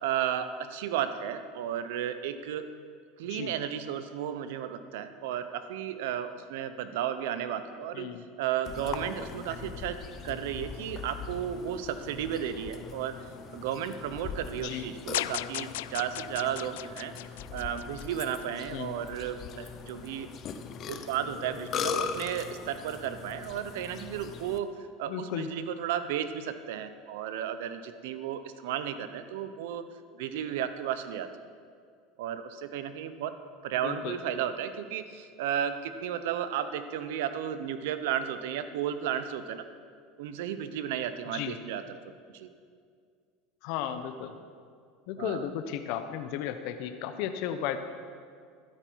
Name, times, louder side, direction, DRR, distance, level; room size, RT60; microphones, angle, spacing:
voice 1, 0.0-2.7 3.2-8.1 8.4-10.0 10.2-13.1 13.5-17.1 17.5-20.3 20.9-24.7 25.0-29.8 30.1-31.3 32.2-33.3 33.6-39.6 40.2-42.0 42.3-42.5 45.2-45.5, right 9 dB, 80° right, 11 dB, 0.9 m, -33 dB
Burping eructation, 8.7-24.6, left 6 dB, 40° left, 0.9 m, -40 dB
sound 1, 15.1-18.4, left 16 dB, 85° left, 0.3 m, -36 dB
voice 2, 25.1-25.5 33.8-34.2 41.3-41.5 43.6-44.3 45.1-47.8, left 10 dB, 65° left, 8 dB, 0.9 m, -34 dB
13.0 x 12.5 x 4.7 m, 2.2 s
supercardioid pair, 130°, 0 cm